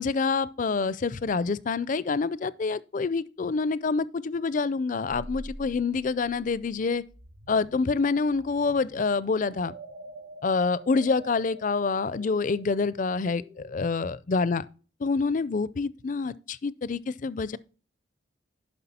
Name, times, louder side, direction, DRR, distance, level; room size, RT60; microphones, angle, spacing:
voice 1, 0.0-7.0 7.5-9.7 10.4-14.6 15.0-17.6, left 4 dB, 40° left, 0.4 m, -27 dB
sound 1, 5.1-13.8, right 1 dB, 50° right, 1.3 m, -47 dB
11.0 x 5.8 x 4.2 m
head